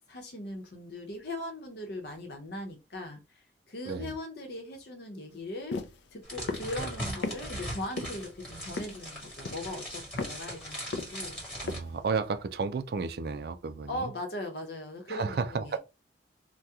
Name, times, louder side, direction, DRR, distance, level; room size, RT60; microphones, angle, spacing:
voice 1, 0.0-5.8 6.1-11.4 13.9-15.8, left 1 dB, 60° left, 0.9 m, -39 dB
sound 1, 5.7-5.9 6.5-6.7 7.2-7.4 8.0-8.3 8.8-9.1 9.4-9.8 10.2-10.4 10.9-11.4 11.7-11.8, left 3 dB, 80° left, 0.4 m, -34 dB
sound 2, 6.2-11.8, equal, 5° left, 1.5 m, -40 dB
voice 2, 11.6-14.1 15.1-15.8, right 5 dB, 55° right, 0.3 m, -32 dB
2.8 x 2.2 x 3.5 m
head